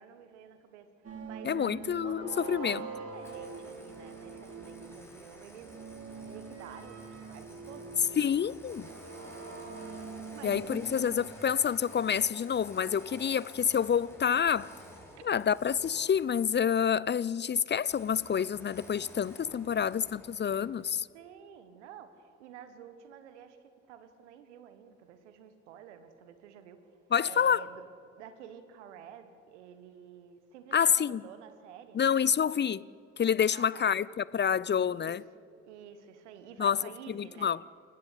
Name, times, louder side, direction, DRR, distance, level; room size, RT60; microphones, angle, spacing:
voice 1, 0.0-2.2 2.5-5.7 6.2-8.0 9.3-11.1 15.2-15.3 19.7-20.0 21.1-23.6 23.9-27.8 28.2-32.2 33.5-33.8 34.9-35.2 35.6-37.5, right 8 dB, 80° right, 1.5 m, -50 dB
sound 1, 1.0-5.2 5.6-11.5, right 5 dB, 45° right, 3.3 m, -44 dB
voice 2, 1.4-2.8 8.2-8.9 10.4-14.7 15.2-21.1 27.1-27.7 30.7-31.2 31.9-32.8 33.2-35.2 36.6-36.8 37.1-37.6, left 8 dB, 30° left, 0.6 m, -28 dB
Engine starting, 3.2-16.6 17.8-21.0, equal, 5° left, 6.3 m, -52 dB
28.5 x 15.0 x 8.4 m
figure-of-eight pair, 45°, 34 cm